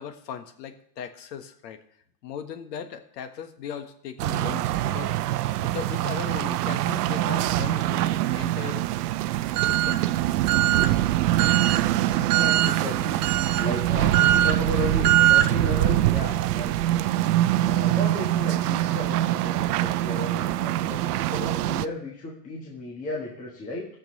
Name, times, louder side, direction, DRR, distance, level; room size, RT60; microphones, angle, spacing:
voice 1, 0.0-1.8 2.2-8.9 9.4-10.0, left 8 dB, 75° left, 8 dB, 1.5 m, -38 dB
sound 1, 4.2-21.9, right 14 dB, 70° right, 0.6 m, -23 dB
voice 2, 12.1-17.0 17.6-23.9, left 1 dB, 15° left, -2 dB, 1.4 m, -35 dB
19.5 x 6.6 x 3.2 m, 0.67 s
supercardioid pair, 160°, 49 cm